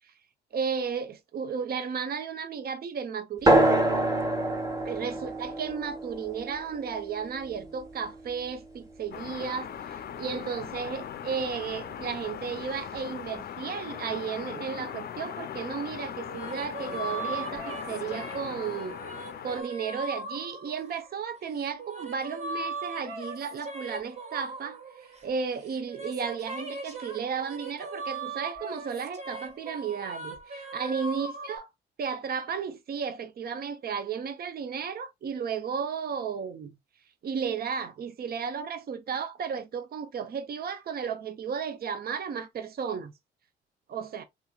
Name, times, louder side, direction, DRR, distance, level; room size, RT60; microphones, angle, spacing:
voice 1, 0.5-3.7 4.8-19.0 19.4-24.8 25.2-31.7 32.0-36.7 37.2-43.1 43.9-44.2, right 6 dB, 50° right, 0.7 m, -34 dB
sound 1, 3.5-8.5, right 1 dB, 15° right, 1.3 m, -26 dB
sound 2, 9.1-19.6, left 9 dB, 50° left, 0.5 m, -39 dB
sound 3, 16.1-21.1 21.6-25.3 25.7-31.6, right 2 dB, 35° right, 1.2 m, -39 dB
3.8 x 2.9 x 2.3 m
cardioid pair, 90°, 20 cm